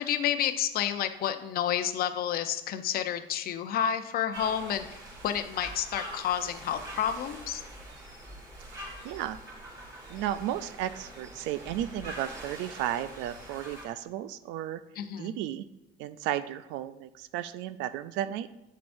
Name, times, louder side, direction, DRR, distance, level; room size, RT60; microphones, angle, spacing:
voice 1, 0.0-5.0 5.2-7.6 15.0-15.4, left 10 dB, 55° left, 9 dB, 0.6 m, -30 dB
sound 1, 4.3-13.9, right 1 dB, 20° right, 2.7 m, -44 dB
voice 2, 8.7-9.4 10.1-14.8 15.2-15.7 16.0-18.5, right 12 dB, 80° right, 12 dB, 0.4 m, -34 dB
8.6 x 6.9 x 2.6 m, 0.92 s
cardioid pair, 125°, 18 cm